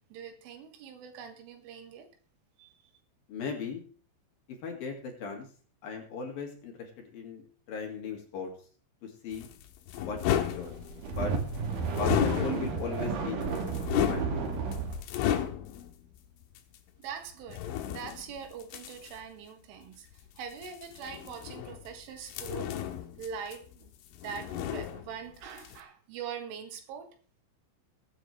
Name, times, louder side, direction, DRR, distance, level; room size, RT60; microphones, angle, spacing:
voice 1, 0.0-2.1 2.6-2.7 17.0-20.1 20.4-22.8 23.2-23.9 24.2-27.1, right 7 dB, 85° right, 5 dB, 4.2 m, -42 dB
voice 2, 3.3-3.8 4.6-5.5 5.8-8.5 9.0-9.5 9.9-10.7 11.1-11.3 11.9-13.5 14.0-14.6, left 5 dB, 55° left, 2 dB, 3.4 m, -38 dB
sound 1, 9.3-11.2 11.9-13.0 13.4-15.9 16.6-16.7 17.5-19.2 20.5-21.9 22.3-23.9 24.1-25.3 25.6-25.8, left 10 dB, 80° left, 3.7 m, -33 dB
sound 2, 10.8-15.0, right 5 dB, 55° right, 3.4 m, -32 dB
22.0 x 9.1 x 3.3 m, 0.41 s
omnidirectional pair, 5.6 m